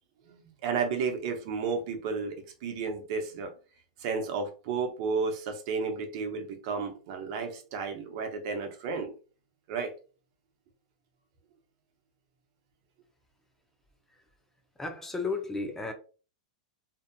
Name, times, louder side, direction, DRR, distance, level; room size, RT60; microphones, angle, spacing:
voice 1, 0.3-3.5 4.0-9.1 9.7-9.9, right 5 dB, 55° right, 0.8 m, -32 dB
voice 2, 14.8-15.9, left 3 dB, 10° left, 0.5 m, -33 dB
2.7 x 2.4 x 2.2 m
hypercardioid pair, 115°, 4 cm